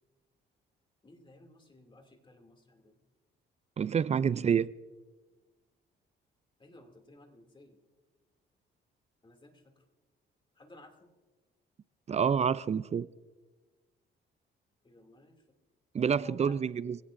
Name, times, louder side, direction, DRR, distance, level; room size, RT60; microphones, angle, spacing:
voice 1, 1.0-3.0 4.2-4.6 6.6-7.8 9.2-9.8 10.5-11.1 14.8-15.4 16.1-16.6, left 2 dB, 25° left, 2.6 m, -56 dB
voice 2, 3.8-4.7 12.1-13.1 15.9-17.0, right 7 dB, 35° right, 0.4 m, -28 dB
25.5 x 17.0 x 2.6 m
cardioid pair, 90°, 20 cm